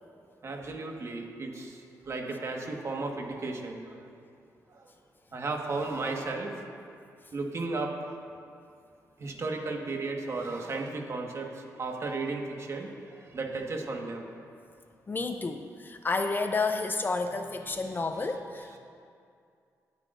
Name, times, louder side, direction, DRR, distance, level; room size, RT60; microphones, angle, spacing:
voice 1, 0.4-4.0 4.7-4.9 5.3-6.6 7.3-8.2 9.2-14.3 17.4-18.8, right 3 dB, 45° right, 1 dB, 1.5 m, -35 dB
voice 2, 15.1-18.8, left 3 dB, 30° left, 6 dB, 0.6 m, -30 dB
21.0 x 8.4 x 2.6 m, 2.4 s
cardioid pair, 85°, 6 cm